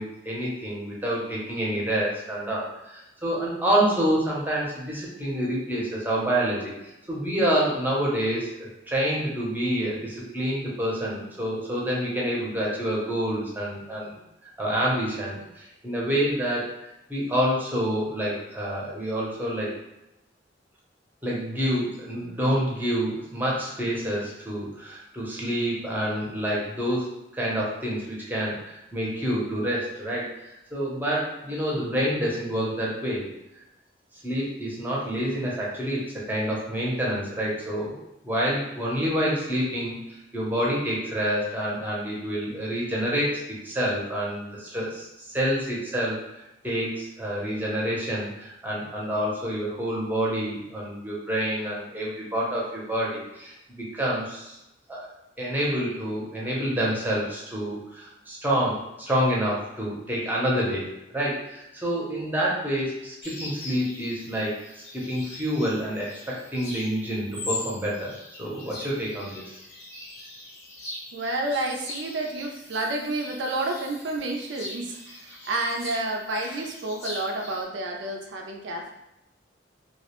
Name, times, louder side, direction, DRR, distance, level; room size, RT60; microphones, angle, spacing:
voice 1, 0.0-6.7 7.1-14.1 14.6-16.7 17.1-19.7 21.2-33.3 34.2-38.0 38.2-46.2 46.6-54.6 54.9-55.1 55.4-60.9 61.1-68.1 68.4-69.6, equal, 10° right, -5 dB, 0.6 m, -28 dB
sound 1, 63.2-77.6, left 2 dB, 75° left, 0.7 m, -41 dB
voice 2, 71.1-78.9, right 2 dB, 70° right, 2 dB, 0.4 m, -30 dB
2.3 x 2.0 x 2.9 m, 0.89 s
head